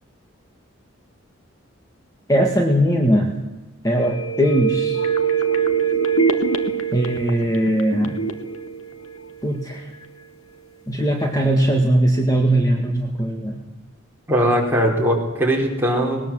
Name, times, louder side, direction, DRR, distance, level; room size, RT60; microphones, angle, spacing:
voice 1, 2.3-3.4 3.8-5.0 6.9-8.2 9.4-9.8 10.9-13.6, right 1 dB, 15° left, 2 dB, 1.9 m, -19 dB
sound 1, 4.0-9.7 10.0-10.1, right 6 dB, 90° left, 1.9 m, -23 dB
voice 2, 14.3-16.3, equal, 10° right, -2 dB, 4.8 m, -20 dB
20.5 x 19.5 x 7.8 m, 1.1 s
head